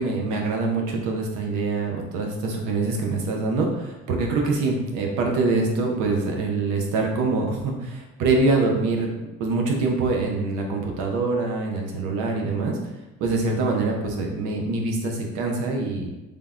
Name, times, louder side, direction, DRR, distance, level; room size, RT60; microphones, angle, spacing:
voice 1, 0.0-9.1 9.4-12.8 13.2-16.2, right 3 dB, 80° right, 1 dB, 0.6 m, -24 dB
3.3 x 2.1 x 2.4 m, 1.0 s
supercardioid pair, 75°, 30 cm